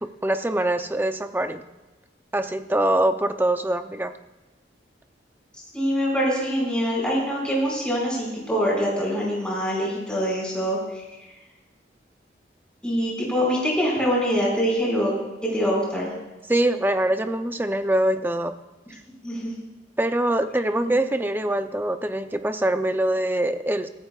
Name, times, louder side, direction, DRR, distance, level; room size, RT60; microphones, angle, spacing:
voice 1, 0.0-1.6 2.3-4.1 16.5-18.6 20.0-23.9, right 1 dB, 10° right, 7 dB, 0.6 m, -24 dB
voice 2, 5.7-10.8 12.8-15.1 15.5-16.1 19.2-19.5, equal, 5° left, -4 dB, 5.2 m, -24 dB
23.0 x 14.5 x 2.4 m, 1.1 s
head